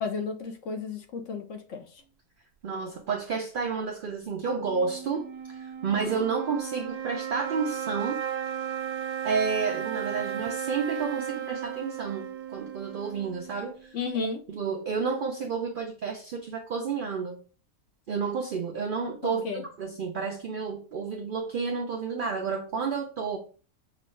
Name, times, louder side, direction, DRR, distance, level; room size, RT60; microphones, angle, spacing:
voice 1, 0.0-2.0 6.0-6.1 13.9-14.4 19.2-19.6, left 4 dB, 65° left, 0.9 m, -33 dB
voice 2, 2.6-8.2 9.2-14.0 14.5-17.4 18.1-23.4, right 5 dB, 70° right, 0.5 m, -31 dB
sound 1, 4.6-14.0, right 9 dB, 85° right, 1.1 m, -35 dB
5.9 x 2.3 x 3.1 m
omnidirectional pair, 1.5 m